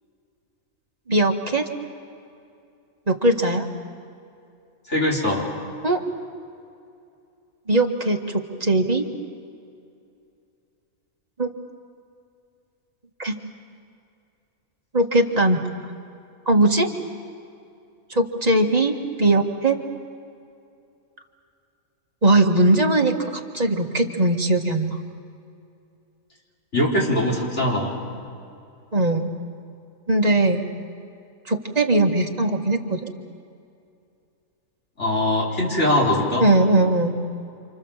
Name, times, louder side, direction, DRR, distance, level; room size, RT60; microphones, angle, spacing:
voice 1, 1.1-1.6 3.1-3.7 5.8-6.0 7.7-9.1 11.4-11.5 13.2-13.3 14.9-15.6 16.5-16.9 18.1-19.8 22.2-25.0 28.9-29.3 30.1-30.6 31.5-33.1 36.4-37.2, right 2 dB, 30° right, 1 dB, 2.0 m, -20 dB
voice 2, 4.9-5.5 26.7-27.9 35.0-36.5, left 1 dB, 50° left, -3 dB, 5.1 m, -21 dB
29.5 x 27.0 x 7.4 m, 2.5 s
omnidirectional pair, 1.5 m